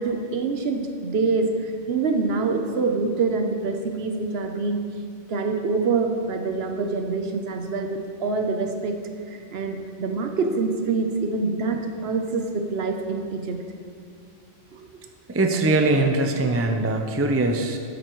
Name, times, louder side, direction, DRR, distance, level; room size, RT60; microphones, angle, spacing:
voice 1, 0.0-4.8 5.3-9.0 9.3-13.6 14.7-14.9, right 4 dB, 60° right, 5 dB, 0.9 m, -25 dB
voice 2, 15.3-17.8, right 2 dB, 20° right, 3 dB, 0.3 m, -22 dB
13.0 x 8.1 x 3.1 m, 2.2 s
omnidirectional pair, 1.3 m